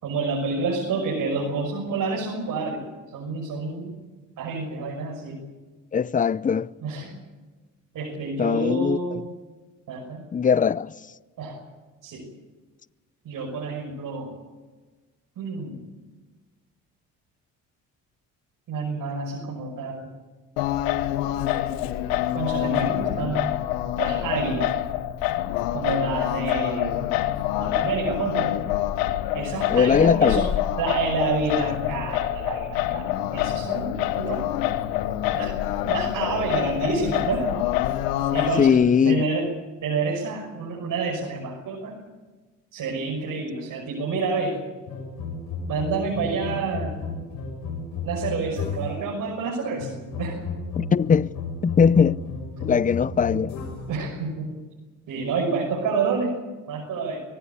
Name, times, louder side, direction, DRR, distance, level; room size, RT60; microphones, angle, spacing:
voice 1, 0.0-3.9 4.4-5.4 6.8-7.2 7.9-9.3 9.9-10.3 11.4-11.6 12.0-12.3 13.2-14.3 15.4-15.9 18.7-20.1 22.3-23.5 24.0-24.7 25.7-27.2 27.6-28.6 29.3-30.5 30.8-34.5 35.3-37.6 38.3-39.5 39.8-42.0 42.7-44.6 45.7-47.0 48.0-49.9 50.2-50.4 53.9-54.6 55.1-56.4 56.7-57.2, right 4 dB, 65° right, 6.3 m, -28 dB
voice 2, 5.9-6.7 8.4-9.0 10.3-10.9 29.7-30.5 38.6-39.2 50.8-51.3 51.6-52.2 52.6-53.6, left 6 dB, 25° left, 0.6 m, -20 dB
Singing, 20.6-38.7, left 13 dB, 90° left, 1.3 m, -26 dB
sound 1, 44.9-49.1 49.8-54.0, left 4 dB, 65° left, 6.1 m, -33 dB
23.5 x 17.5 x 8.5 m
supercardioid pair, 70°, 34 cm